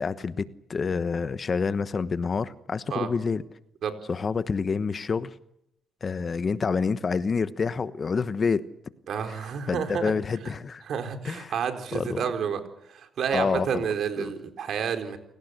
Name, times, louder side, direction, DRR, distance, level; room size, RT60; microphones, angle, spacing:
voice 1, 0.0-3.4 4.1-5.3 6.0-8.7 9.3-10.8 11.2-11.5 11.9-12.2 13.3-13.9 14.2-14.3, left 5 dB, 40° left, 1.1 m, -28 dB
voice 2, 9.1-10.1 10.4-10.5 10.9-15.2, right 7 dB, 65° right, 4.2 m, -30 dB
28.5 x 18.0 x 8.2 m
cardioid pair, 90°, 0 cm